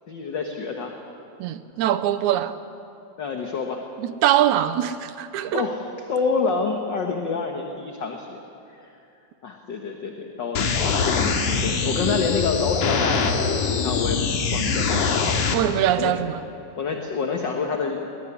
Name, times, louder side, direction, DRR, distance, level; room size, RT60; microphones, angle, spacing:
voice 1, 0.1-1.0 3.2-3.8 5.5-5.8 6.1-8.4 9.4-14.2 14.5-15.2 16.0-16.1 16.8-18.1, left 4 dB, 50° left, 1.6 m, -27 dB
voice 2, 1.4-2.5 4.0-5.7 12.1-12.2 15.5-16.4, right 12 dB, 80° right, 2.2 m, -23 dB
sound 1, 10.6-15.6, left 5 dB, 85° left, 3.2 m, -23 dB
21.0 x 19.0 x 9.9 m
omnidirectional pair, 3.5 m